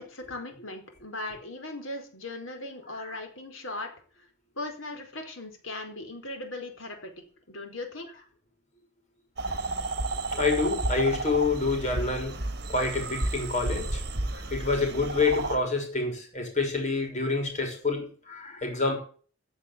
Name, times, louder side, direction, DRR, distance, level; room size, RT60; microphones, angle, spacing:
voice 1, 0.0-3.9 4.6-7.1 7.5-8.2, left 2 dB, 85° left, 5 dB, 4.6 m, -38 dB
sound 1, 9.4-15.6, right 2 dB, 55° right, 1.8 m, -32 dB
voice 2, 10.3-12.3 12.7-14.0 14.3-19.0, left 3 dB, 35° left, 2 dB, 6.0 m, -27 dB
15.0 x 7.5 x 8.4 m, 0.42 s
head